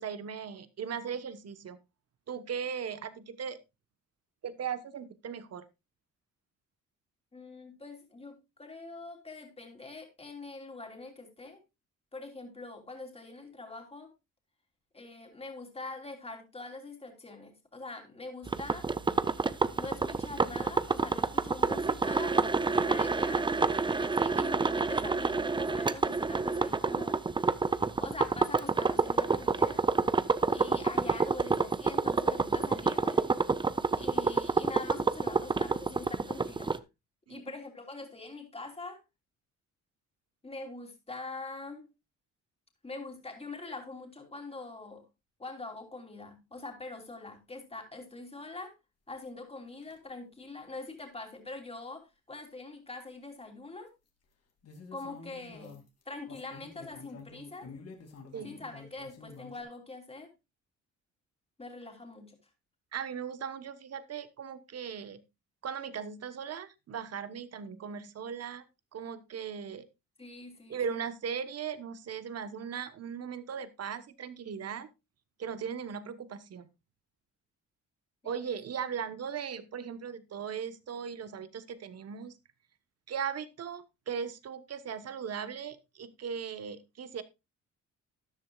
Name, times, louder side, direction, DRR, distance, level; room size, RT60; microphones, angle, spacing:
voice 1, 0.0-1.8 2.3-3.6 4.4-5.6 37.3-37.5 58.3-58.6 62.9-65.2 65.6-68.7 68.9-69.8 70.7-74.9 75.4-76.7 78.2-82.4 83.1-87.2, right 7 dB, 55° right, 13 dB, 1.2 m, -38 dB
voice 2, 7.3-11.6 12.1-14.1 14.9-18.9 19.7-22.4 22.7-27.2 28.0-29.8 30.5-33.2 33.9-36.8 37.3-39.0 40.4-41.9 42.8-45.0 45.4-48.7 49.1-53.9 54.9-57.7 58.4-60.3 61.6-62.4 70.2-70.8 78.2-78.5, left 3 dB, 20° left, 3 dB, 3.3 m, -44 dB
sound 1, 18.5-36.8, right 4 dB, 15° right, 0.6 m, -28 dB
Anklet Jewelleries Payal, 49.8-50.0 54.6-59.6, left 4 dB, 55° left, 2.7 m, -49 dB
13.5 x 10.5 x 2.4 m, 0.23 s
cardioid pair, 90°, 30 cm